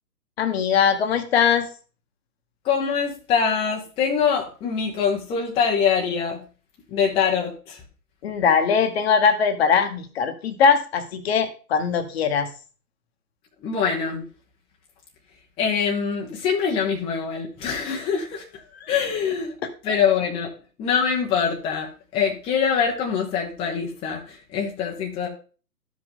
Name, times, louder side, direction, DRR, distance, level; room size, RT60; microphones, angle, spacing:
voice 1, 0.4-1.7 8.2-12.5 18.8-18.9 19.9-20.0, left 6 dB, 40° left, 9 dB, 1.2 m, -21 dB
voice 2, 2.6-6.4 6.9-7.8 13.6-14.3 15.6-18.4 18.9-19.5 19.8-20.5 20.8-25.3, left 6 dB, 10° left, -1 dB, 0.9 m, -24 dB
13.0 x 5.2 x 3.7 m, 0.37 s
figure-of-eight pair, 130°, 48 cm